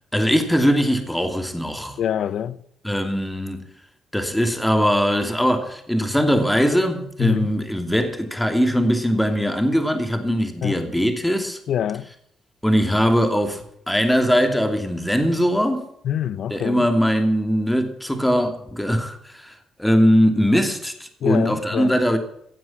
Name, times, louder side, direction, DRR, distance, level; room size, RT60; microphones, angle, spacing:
voice 1, 0.1-2.0 2.8-3.7 4.1-11.6 12.6-15.9 16.5-22.2, equal, 5° left, 2.8 m, -21 dB
voice 2, 2.0-2.6 7.2-7.5 10.6-10.8 11.7-12.1 16.0-16.9 21.2-22.0, left 10 dB, 70° left, 0.8 m, -25 dB
16.5 x 7.6 x 8.9 m
cardioid pair, 90°, 0 cm